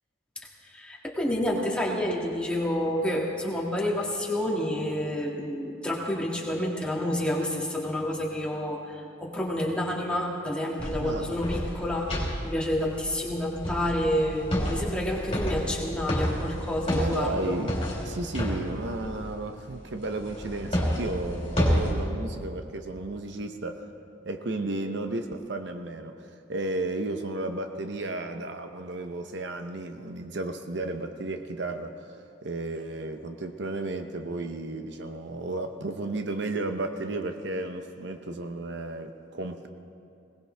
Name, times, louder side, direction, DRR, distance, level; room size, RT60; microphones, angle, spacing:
voice 1, 0.7-12.1 12.4-17.6, left 1 dB, 5° left, -4 dB, 2.0 m, -29 dB
sound 1, 10.8-19.5 20.0-21.9, equal, 30° left, 3.8 m, -30 dB
voice 2, 11.0-11.4 16.9-17.7 18.0-23.9 24.2-32.1 32.4-39.7, right 2 dB, 60° right, 6 dB, 0.8 m, -33 dB
21.0 x 18.5 x 3.4 m, 2.6 s
head